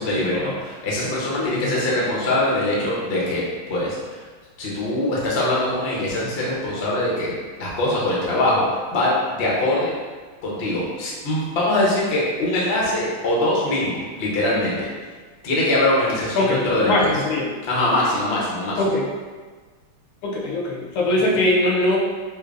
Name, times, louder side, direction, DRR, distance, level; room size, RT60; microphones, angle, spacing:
voice 1, 0.0-3.4 3.7-4.2 4.6-7.3 7.6-9.9 10.4-14.9 15.4-17.1 17.7-18.8 21.2-21.3, left 1 dB, 65° left, -5 dB, 0.6 m, -22 dB
voice 2, 1.4-1.7 16.4-17.5 18.8-19.0 20.2-22.0, left 2 dB, 90° left, -2 dB, 1.6 m, -21 dB
4.2 x 2.7 x 2.5 m, 1.4 s
omnidirectional pair, 2.3 m